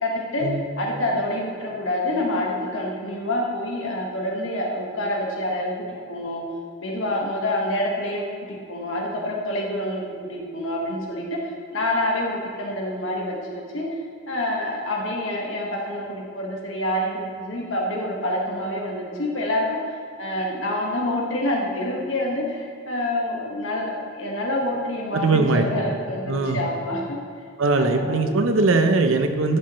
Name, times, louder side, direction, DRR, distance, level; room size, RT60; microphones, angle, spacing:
voice 1, 0.0-0.5 0.8-6.4 6.8-14.0 14.3-19.8 20.2-27.2 27.8-28.4, left 1 dB, 75° left, -1 dB, 1.6 m, -27 dB
voice 2, 25.1-25.7 26.3-26.6 27.6-29.6, right 3 dB, 80° right, 7 dB, 0.7 m, -20 dB
11.5 x 6.6 x 3.1 m, 2.3 s
head